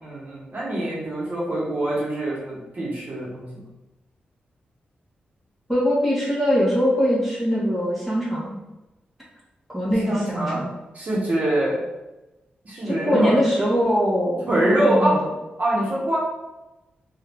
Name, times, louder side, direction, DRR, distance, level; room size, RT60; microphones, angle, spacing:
voice 1, 0.0-3.5 10.0-10.6 10.9-11.8 12.6-13.3 14.5-15.2 15.6-16.2, right 1 dB, 50° right, -6 dB, 1.0 m, -24 dB
voice 2, 5.7-8.6 9.7-10.7 12.8-15.3, equal, ahead, -7 dB, 1.0 m, -22 dB
2.7 x 2.3 x 3.4 m, 1.0 s
cardioid pair, 90°, 4 cm